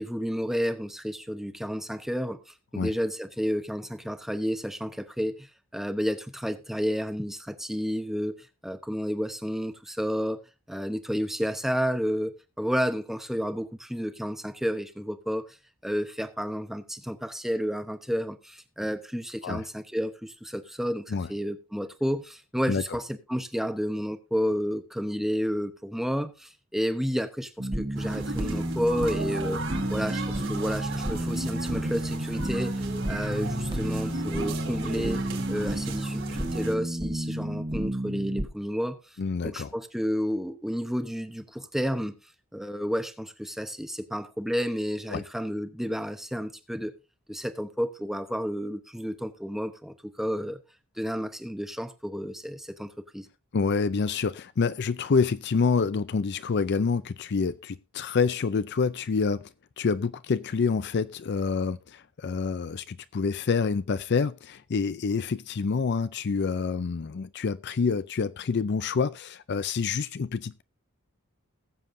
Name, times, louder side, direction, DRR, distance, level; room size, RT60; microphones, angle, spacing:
voice 1, 0.0-10.4 10.7-12.3 12.6-15.6 15.8-29.6 29.9-39.0 39.4-42.2 42.5-46.9 47.3-50.6 51.0-53.3, equal, ahead, 0.9 m, -31 dB
sound 1, 27.6-38.5, right 1 dB, 20° right, 1.3 m, -31 dB
sound 2, 27.9-36.7, right 2 dB, 60° right, 4.2 m, -36 dB
voice 2, 39.2-39.7 45.1-45.2 53.5-70.6, left 5 dB, 50° left, 0.4 m, -27 dB
20.0 x 7.5 x 2.6 m
head